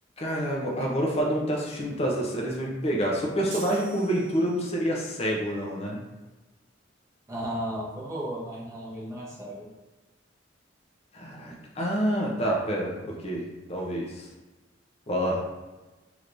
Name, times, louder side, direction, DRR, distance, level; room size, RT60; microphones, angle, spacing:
voice 1, 0.2-6.0 11.1-14.2 15.1-15.4, equal, 35° left, -2 dB, 0.7 m, -28 dB
sound 1, 3.5-4.9, right 3 dB, 85° right, 0.7 m, -42 dB
voice 2, 7.3-9.7 11.8-11.9, equal, 15° right, -5 dB, 0.8 m, -34 dB
3.3 x 3.0 x 2.6 m, 1.2 s
head